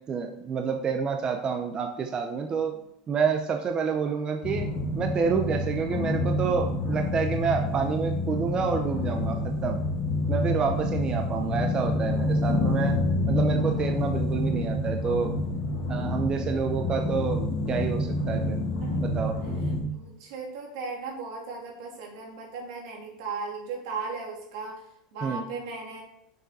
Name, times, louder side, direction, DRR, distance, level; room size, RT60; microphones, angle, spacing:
voice 1, 0.1-2.8 3.1-9.8 10.3-13.0 13.3-15.4 15.9-17.4 17.7-18.6 19.0-19.4 25.2-25.4, right 6 dB, 25° right, 4 dB, 0.6 m, -28 dB
sound 1, 4.4-19.8, left 2 dB, 60° left, 2.6 m, -28 dB
voice 2, 19.9-24.8 25.1-26.0, right 4 dB, 75° right, -1 dB, 2.6 m, -37 dB
6.7 x 6.4 x 4.1 m, 0.76 s
supercardioid pair, 140°, 3 cm